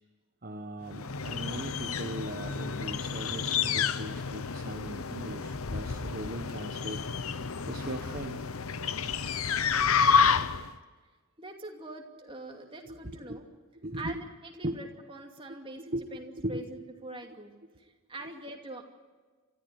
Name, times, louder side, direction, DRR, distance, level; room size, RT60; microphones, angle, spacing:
voice 1, 0.4-8.4 12.8-13.4 13.8-14.2 14.6-14.8 15.9-16.0 16.4-16.8, right 1 dB, 40° right, 5 dB, 1.1 m, -39 dB
sound 1, 0.9-10.7, left 6 dB, 85° left, 0.9 m, -30 dB
voice 2, 11.4-13.5 13.9-18.8, right 2 dB, 25° right, 2 dB, 2.6 m, -44 dB
28.5 x 14.0 x 9.6 m, 1.4 s
head